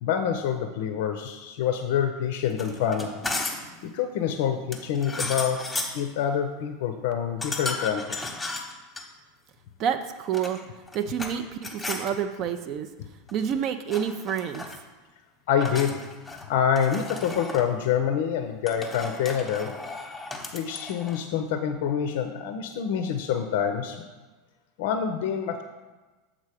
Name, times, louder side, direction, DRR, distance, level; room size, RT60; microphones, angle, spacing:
voice 1, 0.0-3.1 3.8-5.6 5.9-8.4 15.5-16.0 16.5-19.8 20.5-24.1 24.8-25.6, left 8 dB, 55° left, 7 dB, 0.5 m, -26 dB
sound 1, 2.5-3.7 4.7-6.0 7.4-9.0 10.2-11.4 11.6-12.1 13.3-13.6 13.9-14.8 15.6-16.5 16.8-17.7 18.7-21.2, left 2 dB, 10° left, 0.9 m, -35 dB
voice 2, 9.8-10.6 10.9-12.9 13.3-14.7, right 8 dB, 45° right, 9 dB, 0.4 m, -28 dB
7.3 x 3.8 x 4.8 m, 1.2 s
figure-of-eight pair, 80°, 0 cm